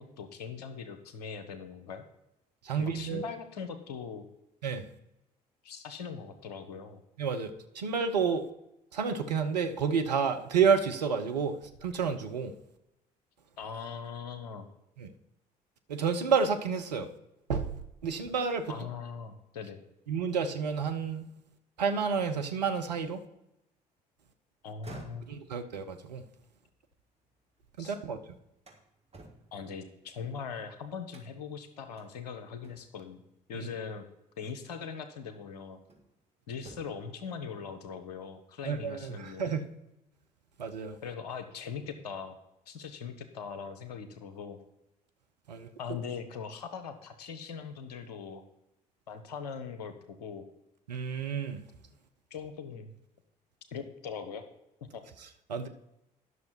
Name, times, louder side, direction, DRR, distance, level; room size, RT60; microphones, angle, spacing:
voice 1, 0.0-2.0 2.8-4.3 5.6-7.0 13.6-14.7 18.7-19.8 24.6-25.3 27.8-27.9 29.5-33.2 33.5-34.1 34.4-35.8 36.5-39.5 41.0-42.4 42.7-44.6 45.8-48.4 49.1-50.4 52.3-52.9 53.7-54.5 54.9-55.0, left 6 dB, 75° left, 9 dB, 1.0 m, -41 dB
voice 2, 2.6-3.3 4.6-4.8 7.2-8.4 8.9-12.5 15.0-15.1 15.9-17.1 17.5-17.7 18.0-18.8 20.1-21.2 21.8-23.2 25.3-26.2 27.8-28.2 33.5-33.7 38.6-39.7 40.6-40.9 45.5-45.7 50.9-51.6 55.5-55.7, right 6 dB, 80° right, 7 dB, 0.8 m, -30 dB
sound 1, 24.6-27.7 28.1-30.5 31.1-31.6 32.0-32.1 32.6-33.1 34.4-34.5 35.1-36.2 36.5-37.1, right 2 dB, 30° right, 2.5 m, -53 dB
11.0 x 6.4 x 4.4 m, 0.87 s
figure-of-eight pair, 50°, 21 cm